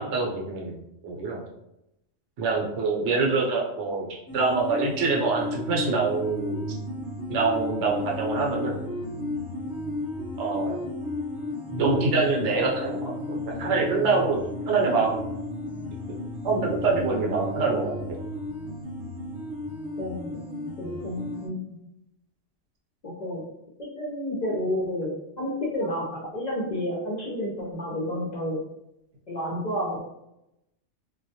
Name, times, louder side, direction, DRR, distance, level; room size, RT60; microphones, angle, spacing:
voice 1, 0.0-1.5 2.4-4.1 4.3-6.6 7.3-8.8 10.4-10.8 11.8-14.4 14.7-15.2 16.4-18.2, right 4 dB, 70° right, -1 dB, 0.8 m, -25 dB
sound 1, 4.3-21.5, left 1 dB, 20° left, 0.7 m, -33 dB
voice 2, 20.0-21.8 23.0-23.4 23.8-28.6 29.3-30.0, left 1 dB, 55° left, -5 dB, 0.5 m, -31 dB
2.2 x 2.1 x 2.7 m, 0.84 s
omnidirectional pair, 1.3 m